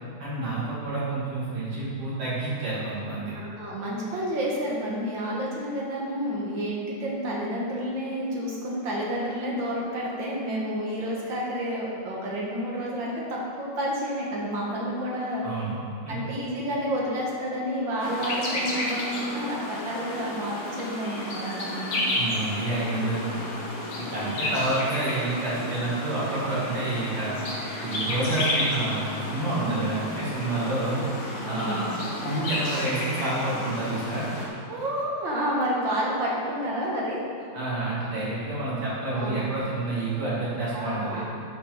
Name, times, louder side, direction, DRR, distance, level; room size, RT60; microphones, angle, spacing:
voice 1, 0.2-3.3 15.4-15.7 16.0-16.1 22.1-23.4 24.0-27.4 27.8-31.0 31.4-31.9 32.2-34.3 37.5-41.2, right 2 dB, 85° right, -8 dB, 3.5 m, -29 dB
voice 2, 3.3-15.4 16.1-22.1 29.5-29.9 31.4-31.9 34.7-37.2 39.1-39.5 40.7-41.2, equal, 65° right, -4 dB, 2.3 m, -30 dB
sound 1, 18.0-34.5, left 1 dB, 85° left, 2.4 m, -32 dB
11.0 x 6.1 x 4.1 m, 2.3 s
omnidirectional pair, 2.3 m